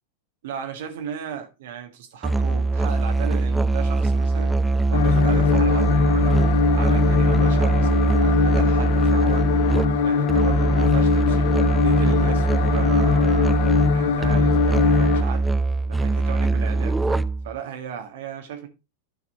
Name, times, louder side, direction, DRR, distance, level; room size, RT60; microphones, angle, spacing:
voice 1, 0.4-4.6 4.9-6.4 6.7-9.5 10.0-11.5 11.8-15.5 15.9-18.7, right 8 dB, 55° right, 1.6 m, -35 dB
Musical instrument, 2.2-17.5, right 3 dB, 10° right, 0.5 m, -22 dB
sound 1, 4.9-15.2, left 6 dB, 55° left, 1.0 m, -21 dB
10.5 x 5.9 x 4.1 m
figure-of-eight pair, 90°, 0 cm